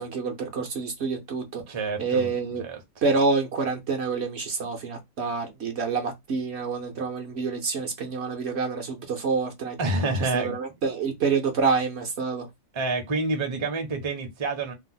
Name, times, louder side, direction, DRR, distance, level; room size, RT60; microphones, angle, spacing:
voice 1, 0.0-1.6 2.0-2.6 3.0-9.8 10.3-12.5, right 4 dB, 60° right, 0.8 m, -27 dB
voice 2, 1.7-2.3 2.6-2.8 9.8-10.6 12.7-14.7, right 3 dB, 30° right, 0.6 m, -28 dB
2.7 x 2.1 x 3.8 m
omnidirectional pair, 1.4 m